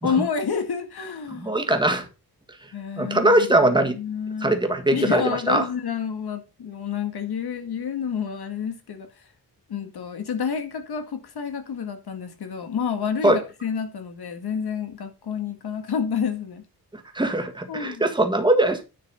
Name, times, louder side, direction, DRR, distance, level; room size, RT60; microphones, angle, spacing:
voice 1, 0.0-1.5 2.7-4.5 4.9-9.1 9.7-16.6 17.7-18.1, left 7 dB, 80° left, 2.0 m, -29 dB
voice 2, 1.4-2.0 3.0-4.0 4.4-5.2 5.5-5.6 13.2-13.4 17.1-18.8, right 1 dB, 10° right, 1.6 m, -20 dB
10.0 x 5.6 x 5.5 m
wide cardioid pair, 150°, 37 cm